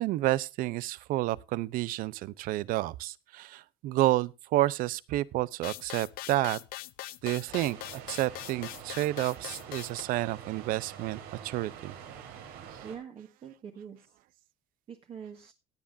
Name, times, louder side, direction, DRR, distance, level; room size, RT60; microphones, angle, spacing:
voice 1, 0.0-6.6 7.2-12.0, right 16 dB, 60° right, 0.7 m, -30 dB
sound 1, 5.6-10.0, left 18 dB, 65° left, 0.8 m, -42 dB
sound 2, 7.5-13.0, right 8 dB, 75° right, 4.4 m, -46 dB
voice 2, 12.8-14.1 14.9-15.5, right 7 dB, 35° right, 1.9 m, -44 dB
17.5 x 9.9 x 2.6 m
cardioid pair, 165°, 16 cm